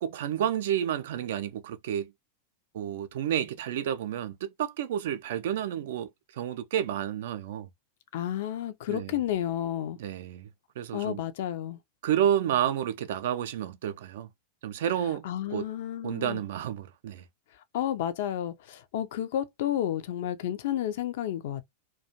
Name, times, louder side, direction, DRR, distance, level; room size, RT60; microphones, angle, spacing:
voice 1, 0.0-2.1 2.7-7.7 8.9-9.1 10.0-10.5 10.8-11.2 12.0-14.3 14.6-15.7 16.0-17.2, right 10 dB, 55° right, 0.3 m, -30 dB
voice 2, 8.1-10.0 10.9-11.8 15.2-16.4 17.7-21.6, left 11 dB, 55° left, 0.4 m, -31 dB
2.4 x 2.2 x 2.7 m
figure-of-eight pair, 90°, 0 cm